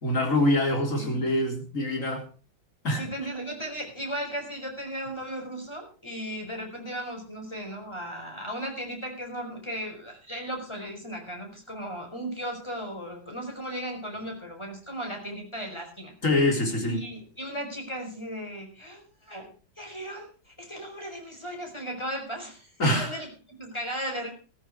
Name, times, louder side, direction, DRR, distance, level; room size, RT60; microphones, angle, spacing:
voice 1, 0.0-2.2 2.8-3.0 16.2-17.0 22.8-23.1, left 1 dB, 40° left, 3 dB, 4.1 m, -24 dB
voice 2, 2.9-16.1 16.8-19.5 19.8-24.3, equal, 15° left, 2 dB, 5.1 m, -36 dB
15.0 x 14.0 x 4.8 m, 0.34 s
omnidirectional pair, 2.1 m